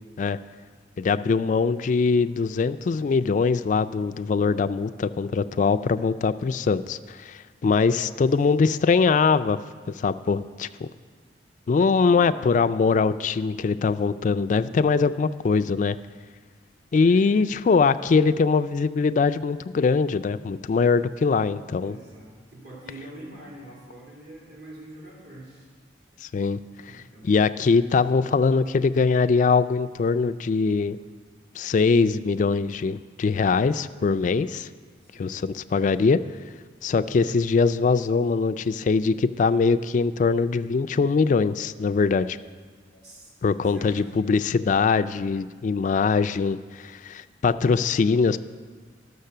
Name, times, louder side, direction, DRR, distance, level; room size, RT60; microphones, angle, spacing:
voice 1, 1.0-9.6 9.9-10.7 11.7-16.0 16.9-22.0 26.2-26.6 26.9-31.0 31.6-34.7 35.2-36.2 36.8-42.4 43.4-48.4, left 4 dB, 45° left, 11 dB, 0.3 m, -22 dB
voice 2, 7.7-8.2 11.9-12.5 17.0-17.3 21.8-25.7 26.8-27.3 35.0-35.4 42.9-43.3 43.6-44.1, right 1 dB, 65° right, -5 dB, 2.6 m, -45 dB
11.5 x 6.6 x 6.7 m, 1.5 s
head